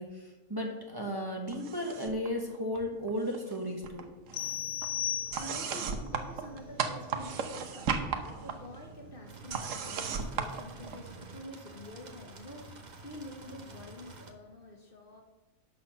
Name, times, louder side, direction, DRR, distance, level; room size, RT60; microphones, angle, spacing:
voice 1, 0.0-4.1, equal, 20° right, 1.2 m, -35 dB
sound 1, 1.5-2.3 2.5-3.6 3.8-11.4, right 6 dB, 75° right, 1.2 m, -37 dB
sound 2, 4.3-5.9, left 10 dB, 85° left, 1.1 m, -35 dB
voice 2, 4.9-15.2, left 2 dB, 45° left, 1.1 m, -48 dB
sound 3, 9.3-14.3, right 3 dB, 40° right, 0.9 m, -50 dB
11.5 x 4.3 x 6.7 m
omnidirectional pair, 1.4 m